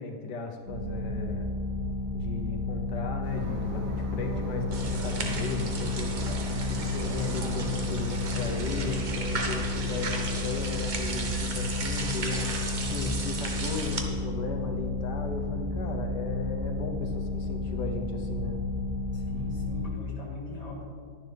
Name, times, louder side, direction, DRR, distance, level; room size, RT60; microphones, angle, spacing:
voice 1, 0.0-1.6 2.1-12.5 12.9-18.6, left 4 dB, 85° left, 4 dB, 1.4 m, -36 dB
sound 1, 0.7-19.9, left 3 dB, 55° left, 1.8 m, -32 dB
sound 2, 3.2-9.0, left 1 dB, 55° right, 1.5 m, -37 dB
sound 3, 4.7-14.0, right 3 dB, 35° right, 0.8 m, -35 dB
voice 2, 19.1-20.8, equal, 20° left, -3 dB, 1.8 m, -40 dB
11.5 x 10.5 x 3.3 m, 2.2 s
omnidirectional pair, 1.8 m